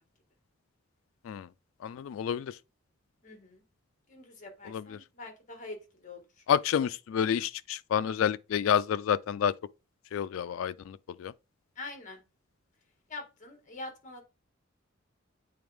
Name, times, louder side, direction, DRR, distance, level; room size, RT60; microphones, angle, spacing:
voice 1, 1.8-2.5 4.7-5.0 6.5-9.5 10.1-11.3, left 8 dB, 85° left, 0.3 m, -29 dB
voice 2, 3.2-3.6 4.1-6.4 11.7-12.2 13.1-14.2, left 2 dB, 40° left, 1.6 m, -44 dB
8.7 x 3.5 x 3.4 m
head